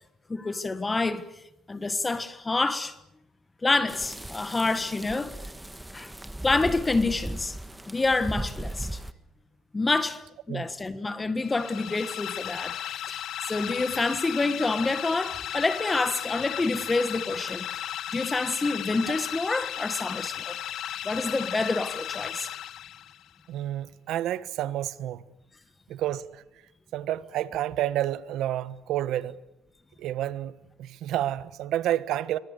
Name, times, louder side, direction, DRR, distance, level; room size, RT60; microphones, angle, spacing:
voice 1, 0.3-1.2 1.7-2.9 3.6-5.3 5.9-6.1 6.4-7.6 7.9-9.0 9.7-10.2 10.5-12.8 13.1-13.2 13.5-17.7 18.1-20.6 21.0-22.5, left 3 dB, 20° left, 1.5 m, -27 dB
sound 1, 3.9-9.1, right 1 dB, 5° right, 1.5 m, -37 dB
sound 2, 11.4-23.3, left 11 dB, 65° left, 0.8 m, -35 dB
voice 2, 23.5-25.3 25.9-26.4 26.9-29.4 30.0-32.4, right 12 dB, 75° right, 1.2 m, -30 dB
27.0 x 24.5 x 6.7 m
cardioid pair, 105°, 0 cm